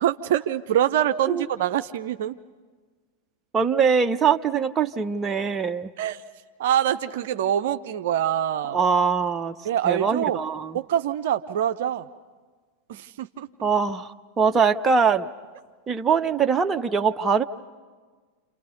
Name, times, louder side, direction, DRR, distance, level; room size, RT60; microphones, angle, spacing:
voice 1, 0.0-2.3 6.0-6.2 6.6-8.8 9.6-10.4 10.7-12.0 12.9-13.5, right 10 dB, 55° right, 9 dB, 0.7 m, -25 dB
voice 2, 3.5-5.9 8.7-9.6 9.8-10.7 13.6-15.3 15.9-17.4, right 6 dB, 20° right, 7 dB, 0.9 m, -22 dB
30.0 x 28.0 x 5.3 m, 1.4 s
figure-of-eight pair, 90°, 0 cm